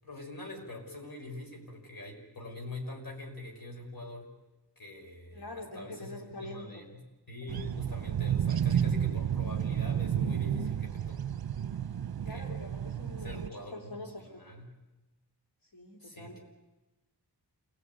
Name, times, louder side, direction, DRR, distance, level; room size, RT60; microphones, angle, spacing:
voice 1, 0.0-4.3 4.8-11.2 12.2-12.5 13.2-14.7 16.0-16.4, left 2 dB, 60° left, 2 dB, 5.7 m, -44 dB
voice 2, 5.3-6.9 12.2-14.4 15.6-16.4, left 2 dB, 80° left, 0 dB, 3.3 m, -45 dB
sound 1, 7.5-13.5, right 9 dB, 65° right, 0.8 m, -31 dB
28.5 x 19.0 x 9.4 m, 1.1 s
wide cardioid pair, 110°, 40 cm